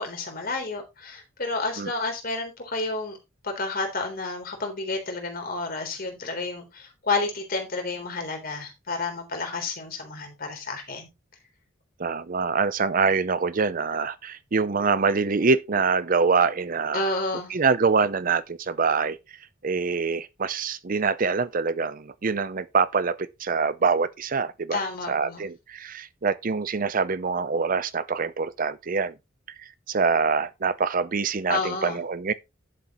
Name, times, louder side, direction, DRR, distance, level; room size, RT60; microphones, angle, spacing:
voice 1, 0.0-3.2 3.4-11.1 16.9-17.5 24.7-25.5 31.5-32.0, left 3 dB, 50° left, 3.7 m, -30 dB
voice 2, 12.0-17.1 17.5-19.2 19.6-29.1 29.9-32.3, right 5 dB, 45° right, 0.6 m, -25 dB
11.0 x 7.9 x 3.1 m
head